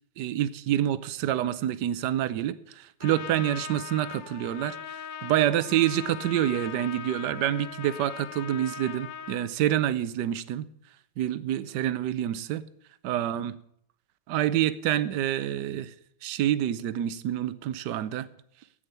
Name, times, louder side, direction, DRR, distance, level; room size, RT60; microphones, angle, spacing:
voice 1, 0.2-10.7 11.2-12.6 13.0-13.6 14.3-15.9 16.2-18.3, right 12 dB, 70° right, 1.1 m, -27 dB
Trumpet, 3.0-9.5, left 8 dB, 65° left, 1.5 m, -40 dB
10.0 x 8.6 x 9.4 m
omnidirectional pair, 2.3 m